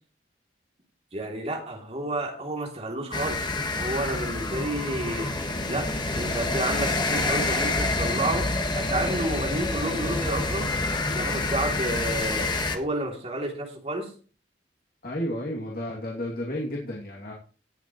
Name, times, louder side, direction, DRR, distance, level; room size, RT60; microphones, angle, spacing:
voice 1, 1.1-3.4 3.7-5.3 5.7-8.5 8.8-10.7 11.1-12.5 12.7-14.1, right 1 dB, 35° right, 1 dB, 3.0 m, -30 dB
sound 1, 3.1-12.8, left 2 dB, 25° left, 1.5 m, -27 dB
voice 2, 15.0-17.3, equal, 55° left, -2 dB, 2.7 m, -32 dB
18.0 x 8.1 x 3.1 m, 0.39 s
head